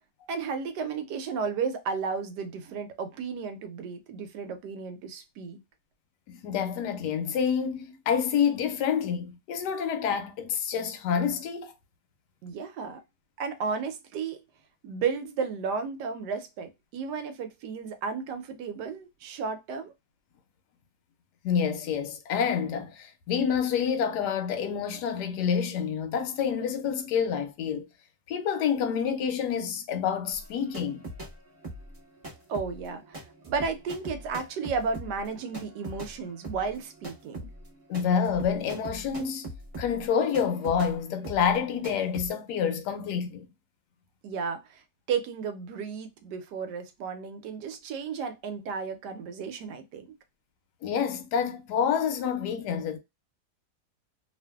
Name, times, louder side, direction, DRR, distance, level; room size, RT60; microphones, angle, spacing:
voice 1, 0.3-5.6 12.4-13.0 13.4-14.4 14.8-19.9 32.5-37.5 44.2-44.8 45.1-50.0, right 5 dB, 85° right, 1.2 m, -33 dB
voice 2, 6.3-11.7 21.4-27.8 28.3-31.0 37.9-43.4 50.8-53.0, left 7 dB, 85° left, 1.2 m, -28 dB
sound 1, 30.3-31.3 31.6-41.0 41.2-41.6 41.8-42.3, right 1 dB, 30° right, 0.8 m, -41 dB
2.8 x 2.5 x 2.2 m
omnidirectional pair, 1.7 m